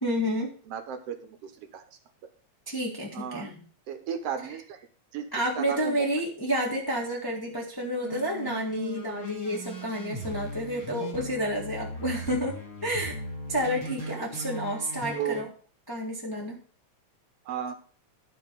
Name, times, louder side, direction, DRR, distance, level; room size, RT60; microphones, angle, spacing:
voice 1, 0.0-0.5 2.7-3.5 5.3-13.2 13.5-15.5 15.9-16.6, equal, 10° left, -2 dB, 1.1 m, -30 dB
voice 2, 0.7-1.8 3.1-3.5 3.9-4.9 5.1-5.3 5.6-6.1 14.1-14.3 15.1-15.5 17.5-17.7, right 8 dB, 65° right, 7 dB, 2.0 m, -35 dB
sound 1, 8.0-15.4, equal, 30° left, 1.8 m, -38 dB
12.5 x 4.1 x 6.7 m, 0.42 s
omnidirectional pair, 3.3 m